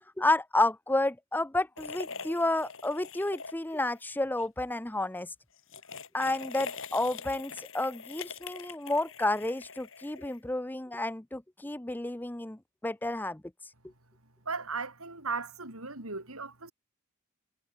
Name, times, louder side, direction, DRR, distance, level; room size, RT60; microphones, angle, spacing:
voice 1, 0.0-5.3 6.1-13.4, left 2 dB, 10° left, 0.6 m, -31 dB
sound 1, 1.8-4.0 4.2-4.5 5.6-10.5, left 5 dB, 60° left, 4.4 m, -43 dB
voice 2, 14.4-16.7, right 4 dB, 80° right, 6.1 m, -36 dB
head